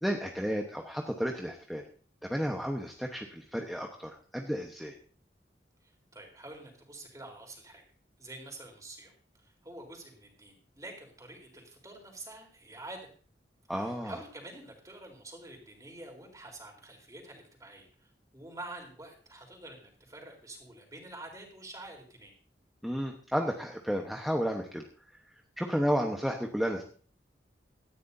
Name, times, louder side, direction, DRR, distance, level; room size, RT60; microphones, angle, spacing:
voice 1, 0.0-1.8 2.2-4.9 13.7-14.1 22.8-24.8 25.6-26.8, equal, ahead, 1 dB, 1.1 m, -32 dB
voice 2, 5.8-7.8 8.2-9.1 9.4-13.1 13.7-22.4, right 2 dB, 20° right, 1 dB, 3.8 m, -47 dB
18.0 x 14.0 x 2.7 m, 0.44 s
head